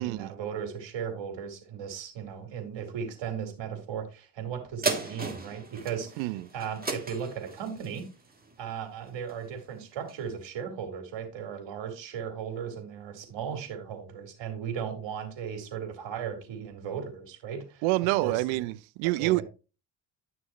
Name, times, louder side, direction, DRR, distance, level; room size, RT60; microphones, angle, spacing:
voice 1, 0.0-8.1 8.6-17.8 18.2-18.7 19.0-19.4, right 7 dB, 70° right, 3.8 m, -36 dB
sound 1, 4.8-9.6 10.1-10.2, right 3 dB, 20° right, 2.9 m, -36 dB
voice 2, 6.2-6.5 17.8-19.4, right 20 dB, 85° right, 0.6 m, -27 dB
12.0 x 6.2 x 3.1 m
supercardioid pair, 60°, 46 cm